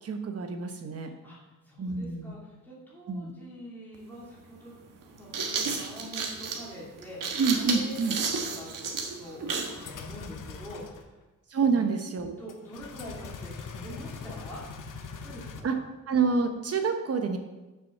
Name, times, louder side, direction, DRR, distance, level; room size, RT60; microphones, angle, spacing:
voice 1, 0.0-1.1 1.8-2.3 3.1-3.3 7.4-8.2 11.5-12.3 15.6-15.7 16.1-17.4, right 5 dB, 50° right, 6 dB, 1.0 m, -27 dB
voice 2, 1.0-1.4 1.7-4.8 5.1-8.7 9.2-11.1 11.7-11.9 12.4-14.6 15.1-15.8, equal, 5° left, -7 dB, 2.5 m, -45 dB
sound 1, 3.9-4.0 5.0-9.8, right 5 dB, 90° right, 1.5 m, -32 dB
sound 2, 9.6-11.0 12.5-15.6, left 5 dB, 80° left, 0.9 m, -42 dB
7.2 x 6.2 x 6.7 m, 1.1 s
wide cardioid pair, 170°, 31 cm